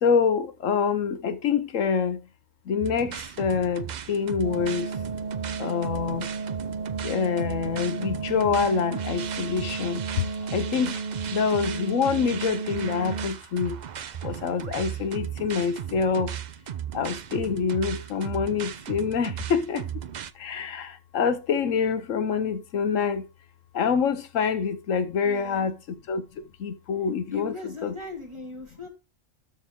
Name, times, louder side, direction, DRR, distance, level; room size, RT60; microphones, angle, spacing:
voice 1, 0.0-2.2 2.7-4.9 5.6-6.2 7.0-10.0 10.5-10.9 11.3-13.8 14.2-16.3 16.9-19.8 20.4-20.9 21.1-23.2 23.7-25.7 26.1-26.2 26.6-27.5 27.8-27.9, left 6 dB, 75° left, 1.2 m, -26 dB
sound 1, 2.8-20.3, right 9 dB, 55° right, 0.5 m, -36 dB
sound 2, 4.4-13.3, right 4 dB, 35° right, 0.9 m, -33 dB
voice 2, 25.2-25.7 27.3-28.9, left 4 dB, 20° right, 2.5 m, -38 dB
13.0 x 4.5 x 3.6 m
omnidirectional pair, 1.4 m